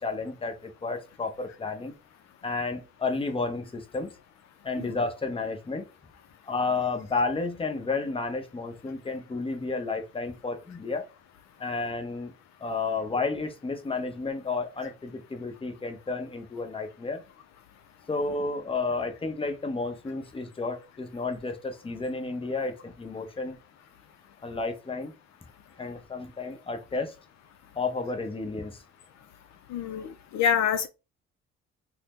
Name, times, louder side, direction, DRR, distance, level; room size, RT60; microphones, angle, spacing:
voice 1, 0.0-1.9 2.4-4.1 4.6-5.9 6.5-11.1 11.6-12.3 12.6-17.2 18.1-23.6 24.4-25.1 25.8-27.2 27.7-28.8, left 3 dB, 20° left, 0.7 m, -31 dB
voice 2, 29.7-30.9, left 8 dB, 65° left, 0.5 m, -26 dB
2.7 x 2.1 x 3.5 m
supercardioid pair, 70°, 30 cm